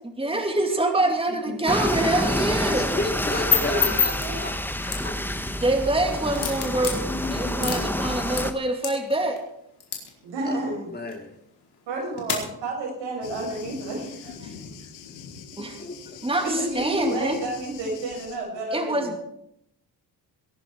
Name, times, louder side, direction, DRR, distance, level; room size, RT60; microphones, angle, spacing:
voice 1, 0.2-3.0 5.5-7.0 7.3-9.4 14.4-14.5 15.6-15.8 16.2-17.4 18.7-19.2, right 2 dB, 10° right, 4 dB, 2.5 m, -25 dB
voice 2, 1.3-1.7 2.7-5.2 7.1-8.3 10.4-11.4 15.1-15.2 15.5-16.5, left 2 dB, 20° left, 4 dB, 2.9 m, -34 dB
sound 1, 1.7-8.5, left 1 dB, 5° left, 1.4 m, -28 dB
sound 2, 3.1-12.4, left 7 dB, 60° left, 4.9 m, -32 dB
voice 3, 3.5-3.8 4.2-4.4 10.2-10.9 11.9-14.5 14.8-14.9 16.4-19.1, right 1 dB, 75° right, 1 dB, 6.6 m, -30 dB
Thunder, 13.2-18.4, left 7 dB, 85° left, 2.2 m, -43 dB
22.0 x 11.0 x 4.7 m, 0.76 s
supercardioid pair, 65°, 44 cm